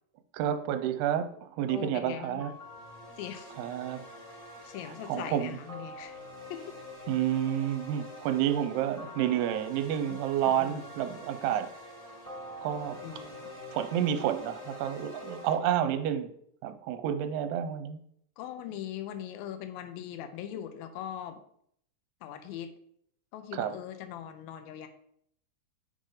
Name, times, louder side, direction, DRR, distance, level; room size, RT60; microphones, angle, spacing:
voice 1, 0.3-2.5 3.6-4.0 5.1-5.6 7.1-11.7 12.6-13.0 13.7-16.3 16.6-18.0 23.5-23.7, right 10 dB, 80° right, 10 dB, 2.6 m, -30 dB
voice 2, 1.7-2.6 3.2-3.5 4.6-6.2 6.5-6.7 10.1-10.2 10.4-10.8 13.0-13.4 18.4-21.4 22.2-22.7 23.3-24.9, left 10 dB, 80° left, 8 dB, 2.1 m, -40 dB
sound 1, 2.4-15.5, left 1 dB, 15° left, 1.1 m, -46 dB
9.1 x 5.0 x 3.7 m, 0.69 s
omnidirectional pair, 4.9 m